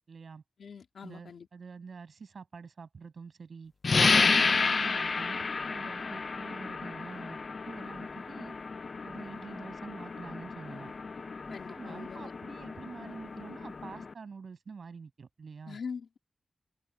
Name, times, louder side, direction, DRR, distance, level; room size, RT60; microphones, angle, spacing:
voice 1, 0.1-0.4 1.0-3.7 4.2-7.4 7.7-8.6 9.0-10.9 11.5-15.8, right 5 dB, 60° right, 7.7 m, -46 dB
voice 2, 0.6-1.5 11.5-12.3 15.7-16.2, left 6 dB, 90° left, 3.1 m, -42 dB
sound 1, 3.8-14.1, left 4 dB, 45° left, 0.4 m, -31 dB
wide cardioid pair, 170°, 0 cm